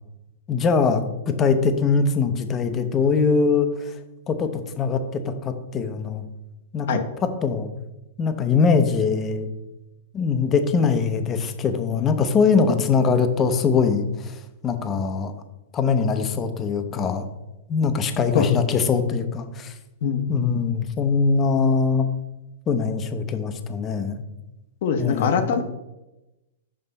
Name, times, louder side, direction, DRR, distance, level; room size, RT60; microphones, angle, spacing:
voice 1, 0.5-3.9 4.3-6.2 6.7-7.7 8.2-9.5 10.1-15.3 15.7-17.2 17.7-19.7 20.3-22.1 22.7-24.2 25.0-25.5, left 5 dB, 20° left, 9 dB, 0.6 m, -22 dB
voice 2, 20.0-20.6 24.8-25.6, left 6 dB, 60° left, 8 dB, 0.8 m, -23 dB
5.6 x 5.5 x 4.0 m, 0.99 s
hypercardioid pair, 145°, 0 cm